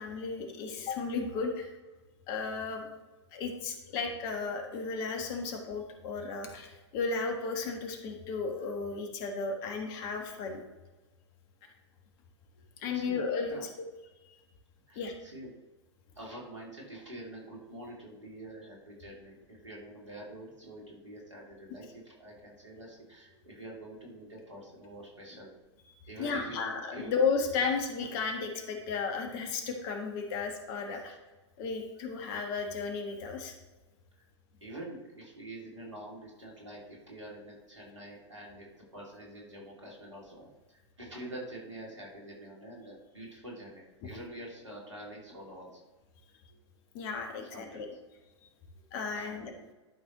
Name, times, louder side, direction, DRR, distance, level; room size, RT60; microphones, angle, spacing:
voice 1, 0.0-1.7 2.3-2.9 3.3-10.6 12.8-13.5 14.9-15.1 26.2-31.1 31.6-33.5 46.9-47.9 48.9-49.5, left 4 dB, 45° left, 3 dB, 1.4 m, -34 dB
voice 2, 12.9-13.7 14.9-15.5 16.2-25.5 26.0-27.1 27.6-27.7 30.8-31.2 34.1-34.2 34.6-45.8 47.4-47.8 49.1-49.6, right 1 dB, 80° right, -3 dB, 2.4 m, -46 dB
11.5 x 5.4 x 3.0 m, 1.2 s
figure-of-eight pair, 95°, 15 cm